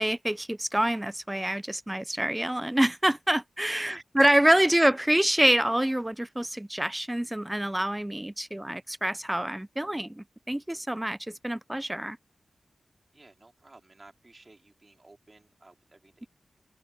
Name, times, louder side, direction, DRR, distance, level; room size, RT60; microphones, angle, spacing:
voice 1, 0.0-12.2, right 1 dB, 10° right, 0.3 m, -26 dB
voice 2, 3.6-4.7 13.1-16.3, right 2 dB, 30° right, 4.2 m, -49 dB
open air
wide cardioid pair, 120°, 0 cm